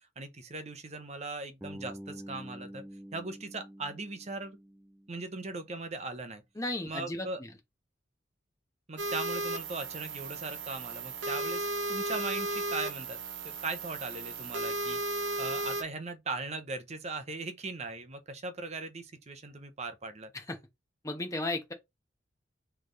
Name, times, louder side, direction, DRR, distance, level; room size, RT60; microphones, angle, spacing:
voice 1, 0.2-2.8 3.1-4.6 5.1-6.4 6.8-7.4 8.9-13.2 13.6-20.3, right 3 dB, 35° right, 0.8 m, -39 dB
Bass guitar, 1.6-5.6, equal, 10° right, 0.4 m, -47 dB
voice 2, 6.6-7.5 20.3-20.6 21.0-21.7, left 2 dB, 20° left, 1.1 m, -35 dB
sound 1, 9.0-15.8, right 2 dB, 90° right, 0.9 m, -35 dB
4.1 x 3.3 x 3.8 m
head